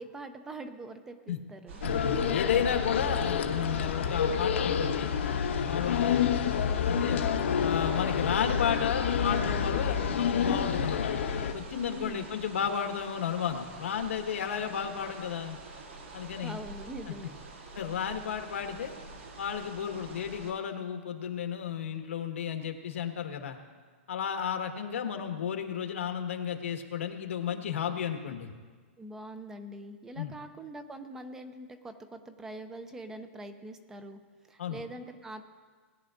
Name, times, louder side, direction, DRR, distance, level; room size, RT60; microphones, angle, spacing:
voice 1, 0.0-1.8 11.8-12.3 16.4-17.3 29.0-34.2 34.5-35.4, right 1 dB, 5° right, 8 dB, 0.4 m, -43 dB
sound 1, 1.7-20.5, right 3 dB, 75° right, 2.3 m, -46 dB
sound 2, 1.8-11.5, left 7 dB, 70° left, 0.9 m, -28 dB
voice 2, 2.0-5.1 5.7-7.2 7.6-11.1 11.5-15.6 16.1-16.6 17.1-17.2 17.7-18.9 19.4-23.6 24.1-28.5 30.1-30.3 34.6-34.8, left 8 dB, 90° left, 5 dB, 1.4 m, -33 dB
20.0 x 9.9 x 2.5 m, 1.5 s
hypercardioid pair, 170°, 7 cm